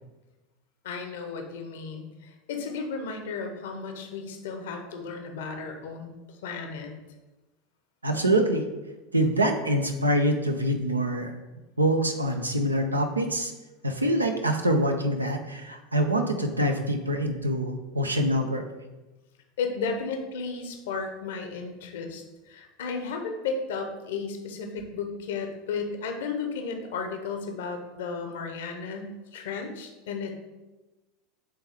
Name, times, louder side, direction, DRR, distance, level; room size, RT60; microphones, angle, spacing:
voice 1, 0.8-6.9 19.6-30.3, left 5 dB, 65° left, 5 dB, 0.8 m, -34 dB
voice 2, 8.0-8.6 9.1-11.3 11.8-13.5 13.8-18.6, right 1 dB, 85° right, 5 dB, 0.6 m, -25 dB
7.7 x 3.5 x 3.5 m, 1.1 s
figure-of-eight pair, 80°, 0 cm